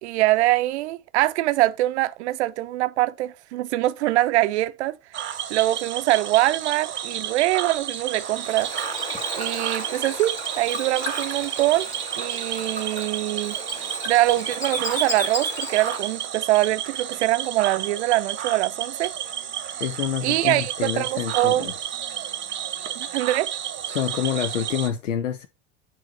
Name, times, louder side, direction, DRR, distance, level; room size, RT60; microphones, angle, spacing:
voice 1, 0.0-8.7 9.3-11.9 12.2-13.6 14.1-19.1 20.2-21.7 23.0-23.5, right 16 dB, 65° right, 0.6 m, -23 dB
Cricket / Frog, 5.1-24.9, right 10 dB, 30° right, 0.9 m, -31 dB
Bird / Water, 7.8-16.2, equal, 10° left, 2.0 m, -34 dB
voice 2, 19.8-21.7 23.9-25.5, left 9 dB, 80° left, 0.6 m, -27 dB
9.1 x 3.1 x 4.1 m
figure-of-eight pair, 70°, 37 cm